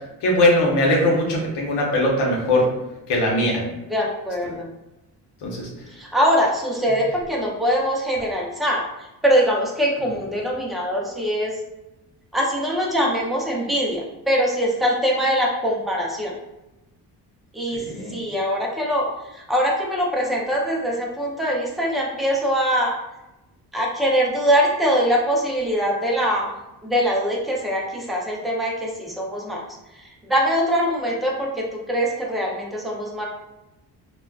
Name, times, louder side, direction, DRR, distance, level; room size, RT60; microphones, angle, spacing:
voice 1, 0.2-2.7 3.1-3.6 5.4-5.7 17.9-18.1, left 1 dB, 85° left, -2 dB, 0.8 m, -20 dB
voice 2, 3.9-4.7 5.9-11.5 12.3-16.4 17.5-23.0 23.7-26.5 26.8-29.6 29.9-33.3, equal, ahead, -2 dB, 0.4 m, -23 dB
3.4 x 2.2 x 2.3 m, 0.96 s
cardioid pair, 150°, 39 cm